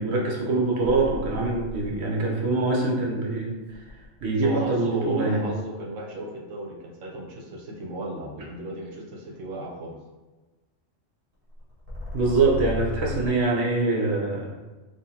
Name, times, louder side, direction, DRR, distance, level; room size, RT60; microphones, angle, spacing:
voice 1, 0.0-3.9 4.2-5.4 12.1-14.5, right 3 dB, 60° right, -2 dB, 1.0 m, -24 dB
sound 1, 0.8-2.1 3.7-4.6 11.6-13.3, left 2 dB, 30° right, 1.1 m, -34 dB
voice 2, 4.4-10.0, right 1 dB, 80° right, -1 dB, 1.1 m, -35 dB
3.7 x 3.0 x 2.8 m, 1.2 s
omnidirectional pair, 1.3 m